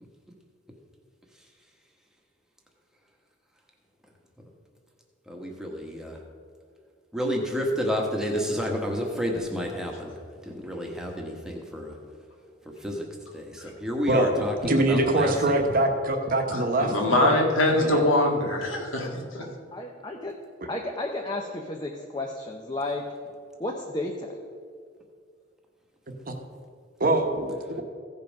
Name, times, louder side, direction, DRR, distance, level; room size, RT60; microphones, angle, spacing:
voice 1, 5.3-6.2 7.1-10.1 10.4-12.0 12.6-13.1 13.3-15.6, equal, 5° right, 0 dB, 1.2 m, -30 dB
voice 2, 14.1-17.4 17.7-18.0 26.3-26.4 27.0-27.8, right 1 dB, 45° right, 4 dB, 1.0 m, -24 dB
voice 3, 16.5-19.4, left 1 dB, 85° left, 0 dB, 1.9 m, -23 dB
voice 4, 19.7-20.4 20.7-23.0 23.6-24.3, left 2 dB, 20° left, 1 dB, 0.6 m, -32 dB
15.5 x 5.4 x 5.3 m, 2.2 s
head